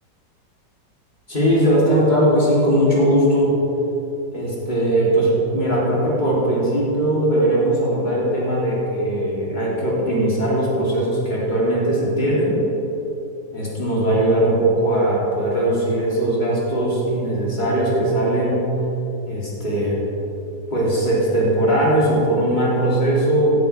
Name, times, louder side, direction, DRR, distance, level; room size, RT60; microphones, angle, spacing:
voice 1, 1.3-3.6 4.3-12.6 13.5-18.7 19.3-20.0 20.7-23.6, right 1 dB, 25° left, -7 dB, 3.4 m, -19 dB
16.5 x 11.5 x 3.5 m, 3.0 s
omnidirectional pair, 1.9 m